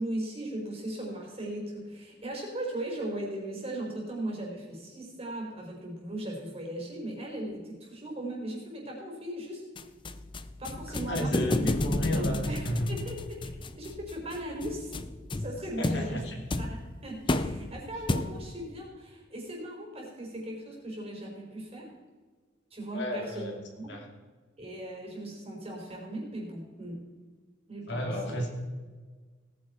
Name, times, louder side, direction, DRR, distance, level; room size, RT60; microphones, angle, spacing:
voice 1, 0.0-9.6 10.6-11.7 12.1-12.6 12.9-13.4 13.8-15.0 15.4-16.2 16.6-16.8 17.0-21.9 22.7-23.5 23.8-23.9 24.6-27.1 27.7-28.4, right 1 dB, 30° right, -1 dB, 4.1 m, -38 dB
sound 1, 9.8-18.6, left 2 dB, 25° left, 0.5 m, -33 dB
voice 2, 10.9-12.9 15.8-16.3 22.9-23.6 23.9-24.1 27.9-28.5, equal, 65° left, 1 dB, 2.7 m, -32 dB
18.5 x 9.5 x 4.3 m, 1.4 s
head